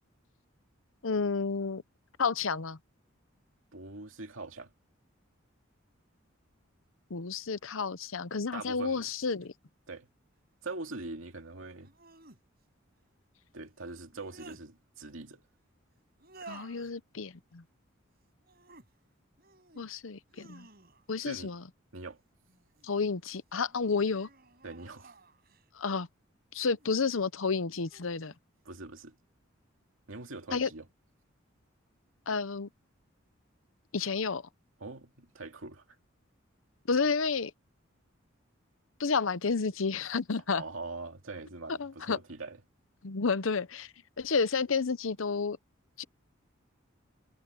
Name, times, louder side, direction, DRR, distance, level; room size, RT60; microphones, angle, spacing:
voice 1, 1.0-1.8 2.2-2.8 7.1-9.5 16.5-17.6 19.8-20.7 21.1-21.6 22.8-24.3 25.7-26.1 26.5-28.3 30.5-30.7 32.3-32.7 33.9-34.4 36.9-37.5 39.0-40.6 41.8-42.2 43.0-43.9 44.2-45.6 46.0-46.1, left 4 dB, 80° left, 0.8 m, -31 dB
voice 2, 3.7-4.7 8.5-9.1 9.9-10.1 10.6-11.9 13.5-15.4 21.2-21.6 21.9-22.2 24.6-25.1 28.6-29.2 30.1-30.9 34.8-36.0 40.5-42.6, right 3 dB, 85° right, 2.5 m, -42 dB
sound 1, 9.4-9.5 11.8-12.4 13.9-14.6 16.2-16.9 18.4-18.9 19.4-19.9 20.3-21.2 22.4-23.1 23.7-25.7 26.8-27.3 27.8-28.4, right 3 dB, 50° right, 7.4 m, -54 dB
head